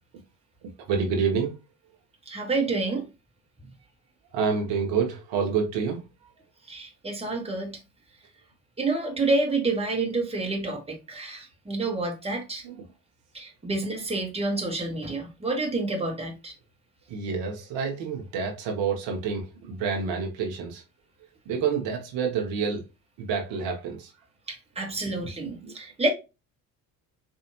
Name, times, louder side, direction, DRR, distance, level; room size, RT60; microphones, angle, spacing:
voice 1, 0.6-1.5 4.3-6.0 12.6-12.9 17.1-20.8 21.4-22.8 23.2-24.1 25.4-25.7, right 6 dB, 60° right, 1.2 m, -28 dB
voice 2, 2.3-3.0 6.7-7.8 8.8-12.6 13.3-16.5 24.5-26.1, right 3 dB, 10° right, 1.3 m, -28 dB
4.3 x 2.7 x 2.9 m
hypercardioid pair, 55°, 49 cm